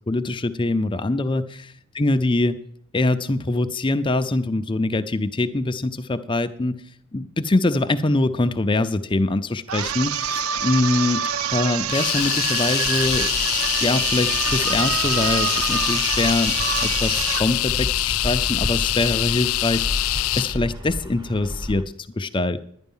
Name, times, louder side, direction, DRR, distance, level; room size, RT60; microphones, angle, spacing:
voice 1, 0.1-1.7 1.9-2.6 2.9-6.8 7.1-11.2 11.5-13.3 13.8-16.5 16.8-22.6, left 2 dB, 25° left, 8 dB, 0.5 m, -23 dB
sound 1, 9.7-17.5, right 9 dB, 85° right, 0.4 m, -26 dB
sound 2, 11.9-20.6, left 17 dB, 80° left, 0.4 m, -24 dB
Bird vocalization bird call bird song, 12.8-21.8, equal, 20° right, 0.9 m, -32 dB
11.5 x 9.8 x 5.5 m, 0.65 s
head